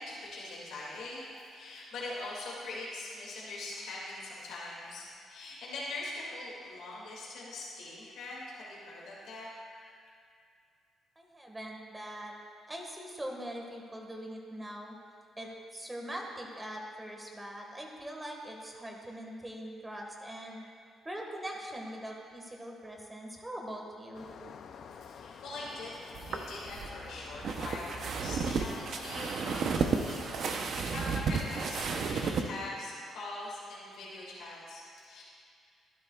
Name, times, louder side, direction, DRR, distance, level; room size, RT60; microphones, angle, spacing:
voice 1, 0.0-10.1 25.0-35.2, left 2 dB, 80° left, -6 dB, 2.3 m, -42 dB
voice 2, 11.2-12.3 12.7-14.9 15.4-20.6 21.1-24.3, equal, 15° right, 0 dB, 1.7 m, -42 dB
sound 1, 24.1-30.6, left 6 dB, 60° left, 0.5 m, -49 dB
sound 2, 26.1-32.5, right 5 dB, 65° right, 0.7 m, -33 dB
12.5 x 12.0 x 2.4 m, 2.3 s
cardioid pair, 90°, 0 cm